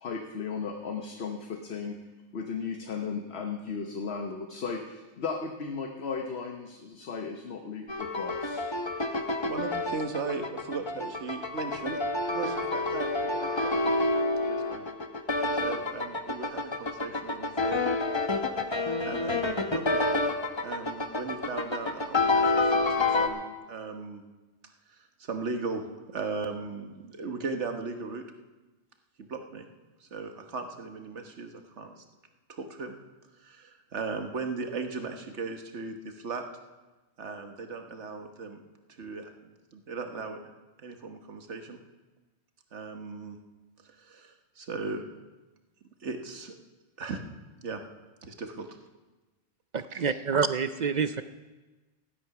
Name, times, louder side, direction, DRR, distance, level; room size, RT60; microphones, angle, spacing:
voice 1, 0.0-2.0 2.3-8.7, left 5 dB, 65° left, 4 dB, 1.3 m, -35 dB
sound 1, 7.9-23.3, left 2 dB, 25° left, 1.0 m, -28 dB
voice 2, 9.5-12.0 12.3-13.9 14.4-14.9 15.6-17.9 18.2-18.6 19.0-20.0 20.6-24.2 24.9-28.2 29.2-29.7 30.0-32.0 32.5-33.0 33.4-36.4 37.2-38.6 38.9-40.5 40.8-41.8 42.7-43.4 43.8-45.0 46.0-46.5 47.0-47.3 47.6-47.8 48.2-48.8 49.9-50.2, right 4 dB, 80° right, 5 dB, 1.6 m, -37 dB
voice 3, 49.7-51.2, right 6 dB, 55° right, 11 dB, 0.5 m, -27 dB
15.5 x 11.5 x 5.9 m, 1.2 s
omnidirectional pair, 1.2 m